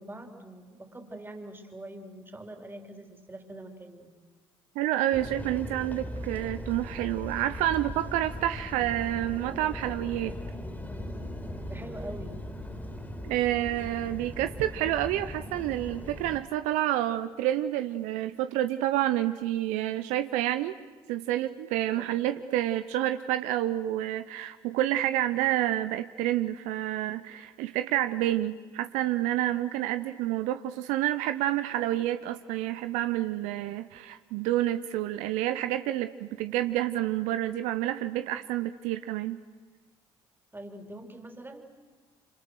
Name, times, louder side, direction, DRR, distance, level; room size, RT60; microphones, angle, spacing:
voice 1, 0.0-4.1 11.7-12.4 21.9-22.1 40.5-41.6, right 1 dB, 15° right, 4 dB, 3.8 m, -43 dB
voice 2, 4.8-10.3 13.2-20.7 21.1-39.4, right 13 dB, 75° right, 11 dB, 0.7 m, -29 dB
sound 1, 5.1-16.4, left 1 dB, 15° left, 3.6 m, -39 dB
27.0 x 26.0 x 6.5 m, 1.4 s
hypercardioid pair, 55°, 13 cm